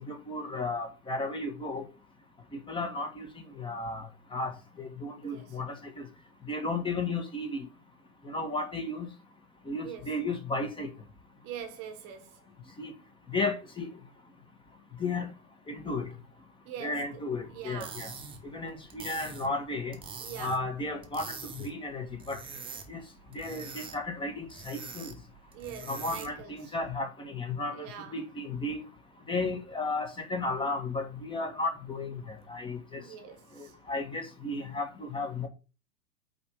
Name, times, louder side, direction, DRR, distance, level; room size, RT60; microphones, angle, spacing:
voice 1, 0.1-1.8 2.7-3.3 3.6-4.1 4.3-4.5 4.8-6.1 6.5-7.7 8.2-9.1 9.7-10.9 12.8-12.9 13.3-13.9 15.0-15.3 15.7-16.0 16.8-18.1 18.5-20.0 20.4-22.4 22.9-23.0 23.3-25.1 25.9-27.9 28.1-28.8 29.3-33.0 33.6-35.5, left 2 dB, 10° left, 1.6 m, -34 dB
voice 2, 5.2-5.6 9.8-10.1 11.4-12.4 16.6-17.2 17.5-18.0 20.2-20.6 25.5-26.7 27.7-28.2 32.9-33.7, right 8 dB, 30° right, 1.3 m, -43 dB
sound 1, 17.6-26.5, right 4 dB, 10° right, 1.3 m, -45 dB
8.6 x 3.6 x 6.2 m
figure-of-eight pair, 105°, 44 cm